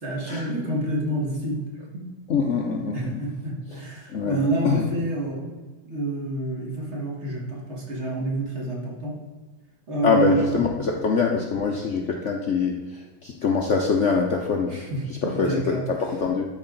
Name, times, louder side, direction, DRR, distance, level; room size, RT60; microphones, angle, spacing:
voice 1, 0.0-1.6 1.9-2.1 2.9-5.5 5.9-9.2 9.9-10.9 14.7-16.1, right 2 dB, 35° right, -2 dB, 1.9 m, -28 dB
voice 2, 2.3-3.0 4.1-4.4 4.6-4.8 10.0-12.8 13.2-14.7 15.2-15.8 16.2-16.5, left 5 dB, 90° left, 1 dB, 0.6 m, -23 dB
12.5 x 4.8 x 3.9 m, 1.3 s
omnidirectional pair, 2.3 m